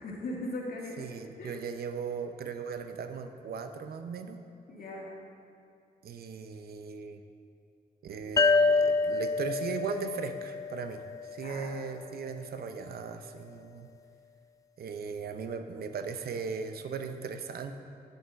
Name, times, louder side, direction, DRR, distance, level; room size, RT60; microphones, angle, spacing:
voice 1, 0.0-1.1 1.4-1.6 4.7-5.1 11.4-11.7, left 1 dB, 75° left, -3 dB, 2.2 m, -38 dB
voice 2, 1.0-4.4 6.0-7.2 8.0-11.0 11.3-13.9 14.8-17.8, right 5 dB, 85° right, 7 dB, 0.7 m, -38 dB
sound 1, 8.4-11.8, left 3 dB, 20° left, 0.4 m, -27 dB
9.3 x 8.0 x 5.8 m, 2.5 s
cardioid pair, 100°, 16 cm